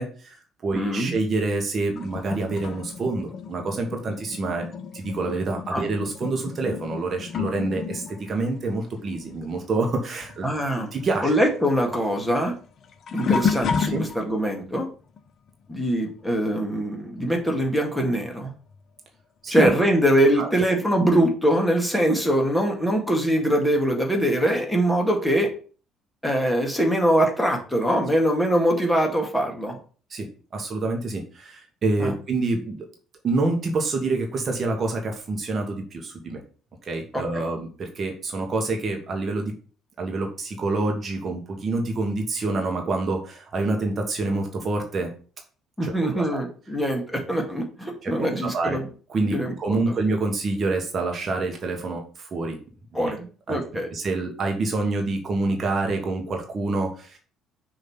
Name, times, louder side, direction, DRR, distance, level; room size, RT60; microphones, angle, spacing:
voice 1, 0.0-4.7 4.9-10.4 10.9-11.3 13.9-14.0 19.4-19.7 20.4-20.5 30.1-30.3 30.5-32.9 33.2-36.4 36.8-39.5 40.0-45.1 45.8-46.4 48.0-48.8 49.1-52.6 52.9-53.1 53.5-53.6 53.9-57.2, right 3 dB, 40° right, 2 dB, 1.4 m, -27 dB
voice 2, 0.7-1.2 5.7-5.9 10.4-10.9 11.2-12.5 13.1-14.9 15.7-18.5 19.5-25.5 26.2-29.8 32.0-32.1 37.1-37.4 45.8-48.9 49.3-49.9 52.9-53.9, right 1 dB, 5° left, 1 dB, 2.0 m, -23 dB
sound 1, 2.0-10.0 10.2-14.5 15.2-15.5 17.7-17.8 18.7-18.8, left 6 dB, 45° left, 0.6 m, -32 dB
6.3 x 3.1 x 5.9 m, 0.40 s
figure-of-eight pair, 50°, 0 cm